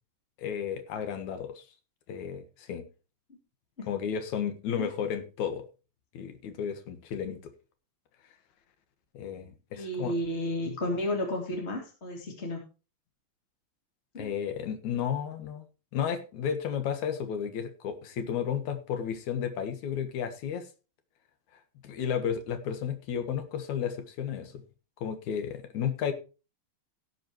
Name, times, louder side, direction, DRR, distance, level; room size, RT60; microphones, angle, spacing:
voice 1, 0.4-1.6 2.1-2.8 3.9-5.7 6.1-7.5 9.1-10.1 10.6-10.8 14.2-15.6 15.9-20.7 21.8-24.6 25.0-26.1, left 8 dB, 65° left, 8 dB, 2.0 m, -33 dB
voice 2, 9.7-12.6 14.1-14.3, left 1 dB, 25° left, 1 dB, 1.5 m, -32 dB
17.5 x 8.0 x 3.0 m, 0.32 s
omnidirectional pair, 5.1 m